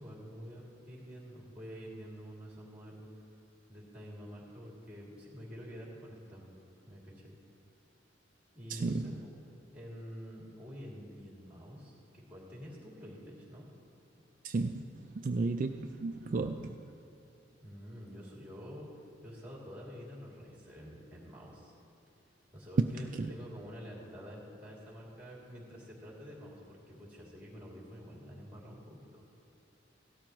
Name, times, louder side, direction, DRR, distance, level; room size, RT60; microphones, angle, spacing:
voice 1, 0.0-3.1 3.7-6.5 6.9-7.3 8.5-9.3 9.7-13.6 17.6-18.9 19.2-21.7 22.5-26.6 26.9-29.3, equal, 5° right, -4 dB, 2.7 m, -48 dB
voice 2, 8.7-9.2 14.4-16.8 22.8-23.3, right 3 dB, 45° right, 5 dB, 0.3 m, -33 dB
16.5 x 13.0 x 3.0 m, 2.9 s
head